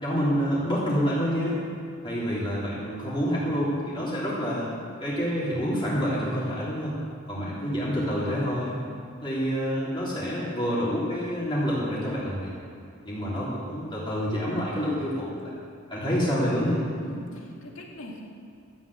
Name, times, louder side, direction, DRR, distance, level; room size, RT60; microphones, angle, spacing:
voice 1, 0.0-1.6 2.0-4.7 5.0-6.9 7.3-8.7 9.2-12.5 13.0-15.3 15.9-16.8, equal, 25° left, -8 dB, 3.2 m, -27 dB
voice 2, 7.3-8.0 17.0-18.2, left 1 dB, 70° left, -1 dB, 2.4 m, -42 dB
13.5 x 7.5 x 8.6 m, 2.5 s
head